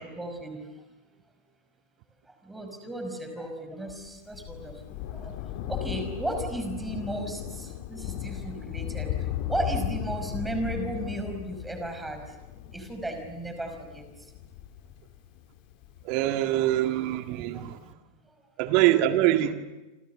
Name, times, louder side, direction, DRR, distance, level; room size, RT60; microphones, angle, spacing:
voice 1, 0.0-0.7 2.3-12.4 12.7-14.3 17.5-17.6 18.3-18.4, right 1 dB, 5° right, 5.4 m, -35 dB
Thunder, 3.9-16.8 17.6-17.7, left 11 dB, 45° left, 2.1 m, -36 dB
voice 2, 16.1-17.8 18.6-19.5, right 14 dB, 45° right, 2.0 m, -24 dB
28.0 x 27.0 x 6.9 m
figure-of-eight pair, 90°, 0 cm